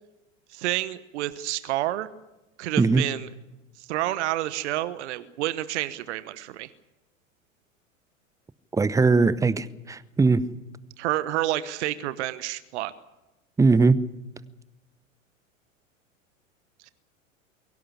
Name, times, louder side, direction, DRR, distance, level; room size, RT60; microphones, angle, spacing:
voice 1, 0.5-2.1 2.6-3.3 3.8-6.7 11.0-12.9, right 14 dB, 55° right, 14 dB, 1.1 m, -29 dB
voice 2, 8.7-10.4 13.6-14.0, right 4 dB, 10° right, 17 dB, 0.8 m, -20 dB
23.0 x 17.5 x 8.6 m, 1.0 s
figure-of-eight pair, 95°, 40 cm